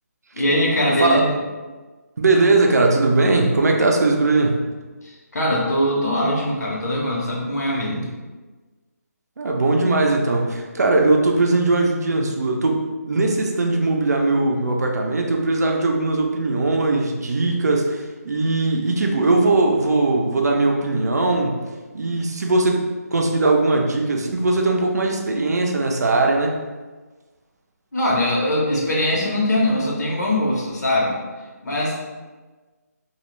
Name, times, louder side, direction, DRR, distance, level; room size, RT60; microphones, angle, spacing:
voice 1, 0.3-1.3 5.0-8.1 27.9-31.2 31.6-31.9, left 1 dB, 75° left, -4 dB, 0.8 m, -21 dB
voice 2, 2.2-4.6 9.4-21.6 21.9-22.8 23.1-26.6, right 2 dB, 75° right, 1 dB, 0.5 m, -19 dB
2.3 x 2.1 x 3.0 m, 1.3 s
hypercardioid pair, 170°, 9 cm